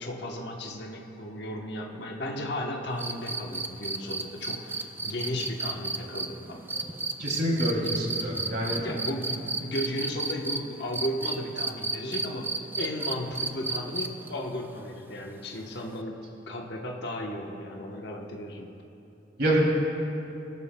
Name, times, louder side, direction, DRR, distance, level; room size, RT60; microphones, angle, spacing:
voice 1, 0.0-6.9 8.7-18.7, left 1 dB, 65° left, 0 dB, 1.0 m, -35 dB
sound 1, 3.0-10.6 10.9-14.3 15.9-16.0, right 3 dB, 10° right, 0.4 m, -32 dB
voice 2, 7.2-8.8 19.4-19.6, right 1 dB, 65° right, -3 dB, 2.7 m, -26 dB
21.0 x 12.5 x 2.2 m, 2.9 s
head